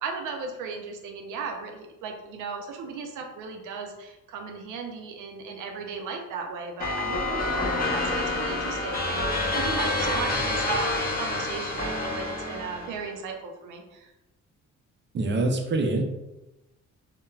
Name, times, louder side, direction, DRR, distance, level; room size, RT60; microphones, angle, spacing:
voice 1, 0.0-14.1, right 5 dB, 90° right, 3 dB, 0.5 m, -36 dB
sound 1, 6.8-13.0, left 2 dB, 30° left, 0.6 m, -28 dB
voice 2, 15.1-16.0, right 2 dB, 40° right, 3 dB, 0.5 m, -25 dB
3.1 x 2.1 x 2.3 m, 0.98 s
cardioid pair, 90°, 30 cm